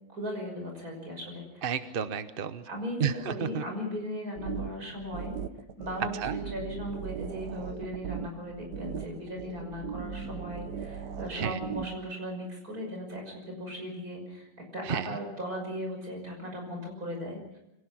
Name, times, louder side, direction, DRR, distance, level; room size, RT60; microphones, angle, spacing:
voice 1, 0.1-1.6 2.6-5.4 5.8-14.5 14.7-17.6, equal, 65° right, 2 dB, 6.4 m, -37 dB
voice 2, 1.6-2.6 3.0-3.6 6.1-6.4 11.3-11.6 14.8-15.2, right 7 dB, 45° right, 11 dB, 0.8 m, -31 dB
sound 1, 4.4-12.1, right 7 dB, 80° right, 1.5 m, -38 dB
25.5 x 18.0 x 6.2 m, 0.90 s
omnidirectional pair, 1.7 m